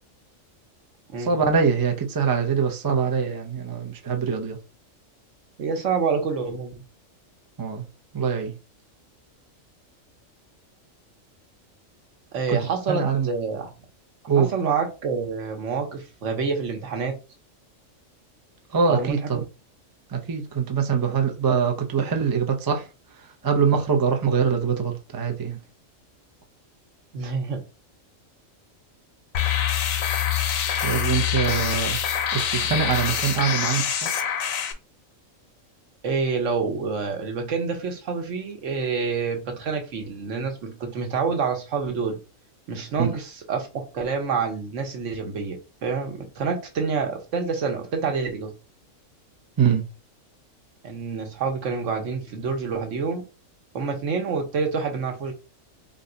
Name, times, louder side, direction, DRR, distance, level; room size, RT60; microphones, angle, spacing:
voice 1, 1.2-4.6 7.6-7.8 8.1-8.6 12.5-12.6 12.9-13.3 14.3-14.5 18.7-19.4 20.1-22.9 23.4-25.6 30.8-32.0 32.3-34.1 43.0-43.2 49.6-49.8, right 6 dB, 30° right, 0.4 m, -23 dB
voice 2, 5.6-6.8 12.3-13.7 14.4-17.2 18.9-19.4 27.1-27.6 36.0-42.2 42.7-48.5 50.8-53.2 53.7-55.3, right 5 dB, 65° right, 1.2 m, -27 dB
sound 1, 29.3-34.7, left 9 dB, 85° left, 1.0 m, -25 dB
3.9 x 2.3 x 3.8 m
omnidirectional pair, 1.4 m